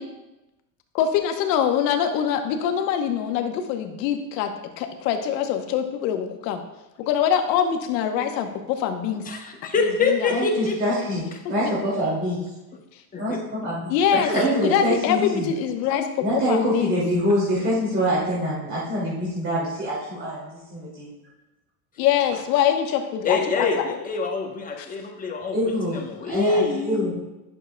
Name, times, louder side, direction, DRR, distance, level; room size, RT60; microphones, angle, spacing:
voice 1, 1.0-4.5 4.8-6.6 7.1-9.2 9.8-10.2 13.9-14.3 14.6-17.0 22.0-23.9 24.8-24.9, left 9 dB, 85° left, 6 dB, 1.1 m, -24 dB
voice 2, 9.2-10.8 13.1-13.4 14.1-14.3 23.2-27.2, left 4 dB, 15° left, 1 dB, 0.9 m, -26 dB
voice 3, 10.3-11.2 11.5-12.4 13.2-13.9 14.3-15.4 16.2-21.1 25.5-26.0 26.3-27.2, equal, 25° right, -8 dB, 2.4 m, -25 dB
10.5 x 6.6 x 2.2 m, 0.99 s
supercardioid pair, 125°, 49 cm